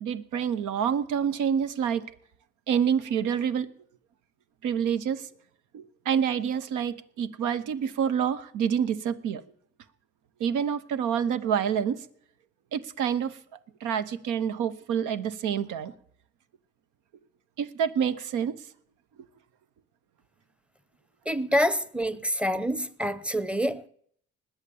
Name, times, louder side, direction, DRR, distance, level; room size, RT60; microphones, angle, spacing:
voice 1, 0.0-2.1 2.7-3.7 4.6-5.2 5.7-9.4 10.4-12.0 12.7-13.4 13.8-15.9 17.6-18.5, right 8 dB, 90° right, 0.9 m, -27 dB
voice 2, 21.3-23.9, equal, 5° right, 0.7 m, -27 dB
20.0 x 7.2 x 7.1 m
cardioid pair, 90°, 30 cm